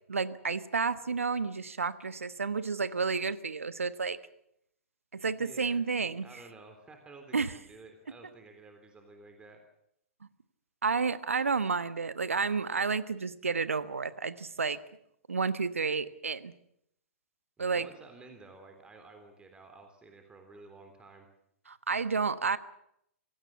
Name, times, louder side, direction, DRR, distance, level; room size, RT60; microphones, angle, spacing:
voice 1, 0.1-4.2 5.1-6.3 7.3-7.5 10.8-14.8 15.3-16.5 17.6-17.9 21.7-22.6, right 5 dB, 80° right, 14 dB, 1.3 m, -31 dB
voice 2, 5.3-9.6 17.6-21.3, right 3 dB, 15° right, 4 dB, 3.4 m, -52 dB
26.5 x 17.5 x 7.2 m, 0.75 s
figure-of-eight pair, 110°, 7 cm